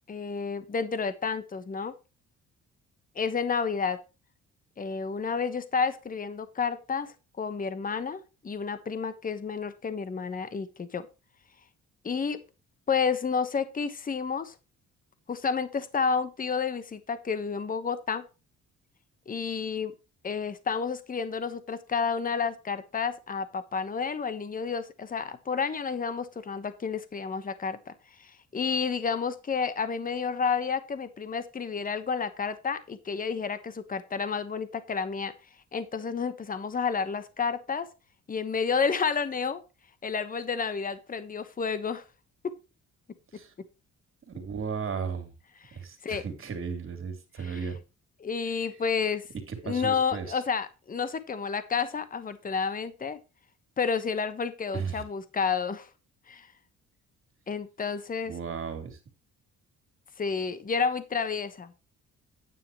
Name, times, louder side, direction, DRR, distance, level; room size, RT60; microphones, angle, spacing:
voice 1, 0.1-1.9 3.1-4.0 4.8-11.1 12.0-12.4 12.9-14.6 15.3-18.2 19.3-19.9 20.2-27.9 28.2-35.3 35.7-37.9 38.3-39.6 40.0-42.0 42.4-42.5 46.0-46.2 47.4-47.6 48.2-49.2 49.6-53.2 53.8-55.9 56.3-56.5 57.5-58.3 60.2-61.7, left 5 dB, 30° left, 12 dB, 1.2 m, -30 dB
voice 2, 44.3-45.3 45.7-47.8 49.5-50.3 54.7-55.0 58.2-59.0, right 6 dB, 45° right, 6 dB, 3.4 m, -35 dB
9.9 x 9.5 x 3.0 m, 0.30 s
cardioid pair, 115°, 30 cm